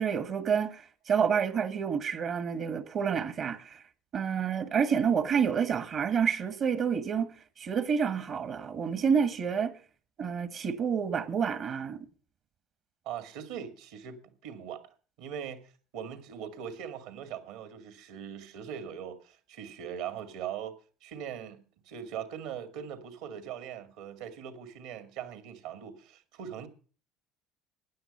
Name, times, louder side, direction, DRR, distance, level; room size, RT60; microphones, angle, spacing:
voice 1, 0.0-3.8 4.1-7.3 7.6-9.7 10.2-12.0, right 7 dB, 50° right, 1.4 m, -28 dB
voice 2, 13.1-14.8 15.2-15.6 15.9-20.7 21.0-26.7, right 8 dB, 70° right, 2.1 m, -40 dB
16.0 x 10.0 x 5.5 m
hypercardioid pair, 70°, 0 cm